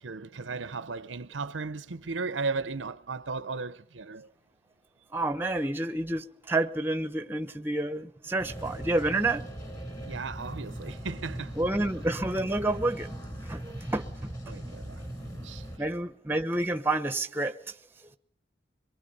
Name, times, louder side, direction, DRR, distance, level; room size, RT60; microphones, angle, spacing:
voice 1, 0.0-4.3 10.0-11.6 14.5-15.6, right 4 dB, 90° right, 0.8 m, -36 dB
voice 2, 5.1-9.4 11.6-14.3 15.8-17.6, right 2 dB, 10° right, 0.9 m, -29 dB
sound 1, 8.4-15.8, right 1 dB, 20° left, 3.6 m, -40 dB
24.0 x 23.0 x 5.5 m
head